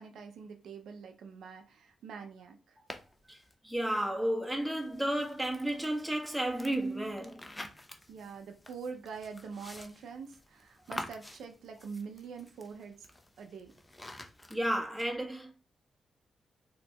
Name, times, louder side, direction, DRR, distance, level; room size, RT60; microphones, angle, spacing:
voice 1, 0.0-2.8 8.1-13.1 13.4-13.7, right 5 dB, 80° right, 0.5 m, -45 dB
sound 1, 2.9-3.5 4.5-14.6, left 1 dB, 15° left, 0.6 m, -49 dB
voice 2, 3.6-7.4 14.5-15.5, right 1 dB, 5° right, 1.2 m, -32 dB
4.0 x 2.8 x 2.3 m
supercardioid pair, 60°, 0 cm